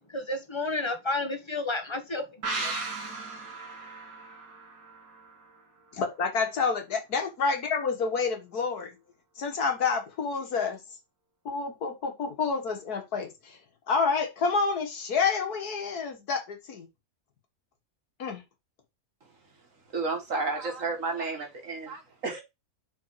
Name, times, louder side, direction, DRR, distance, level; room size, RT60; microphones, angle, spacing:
voice 1, 0.1-2.7, left 2 dB, 20° left, 1.2 m, -31 dB
sound 1, 2.4-5.9 6.2-6.3, right 3 dB, 85° right, 2.6 m, -37 dB
voice 2, 5.9-8.9 9.4-10.8 11.5-13.6 13.9-16.9 18.2-18.4, left 5 dB, 75° left, 2.0 m, -28 dB
voice 3, 19.9-22.4, right 3 dB, 55° right, 2.1 m, -31 dB
5.4 x 5.0 x 4.7 m
omnidirectional pair, 1.7 m